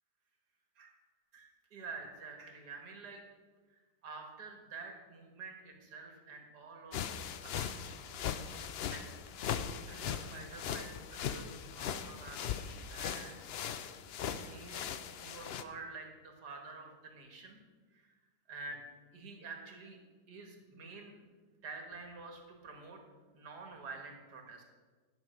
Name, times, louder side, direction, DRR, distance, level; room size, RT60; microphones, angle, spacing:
voice 1, 1.3-3.2 3.7-8.2 8.5-9.1 9.9-13.4 14.4-14.9 15.2-17.6 17.9-18.1 18.5-18.8 19.1-20.0 20.3-21.2 21.6-23.0 23.3-24.6, right 4 dB, 85° right, 2 dB, 2.2 m, -49 dB
sound 1, 6.9-15.6, left 8 dB, 85° left, 0.5 m, -39 dB
10.5 x 6.2 x 6.4 m, 1.4 s
omnidirectional pair, 1.7 m